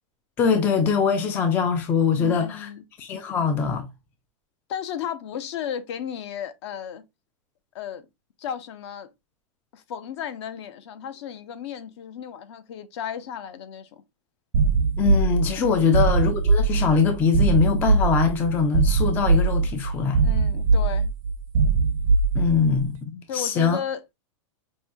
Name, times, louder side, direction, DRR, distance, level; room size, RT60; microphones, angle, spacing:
voice 1, 0.4-2.7 3.0-3.9 15.0-20.2 22.3-23.8, left 6 dB, 10° left, 0.3 m, -22 dB
voice 2, 2.2-2.8 4.7-7.0 7.7-8.1 8.4-9.1 9.7-14.0 15.8-16.0 20.2-21.1 23.3-24.0, left 8 dB, 55° left, 0.7 m, -34 dB
sound 1, 14.5-22.8, right 4 dB, 75° right, 0.6 m, -21 dB
5.4 x 2.6 x 2.2 m
supercardioid pair, 165°, 17 cm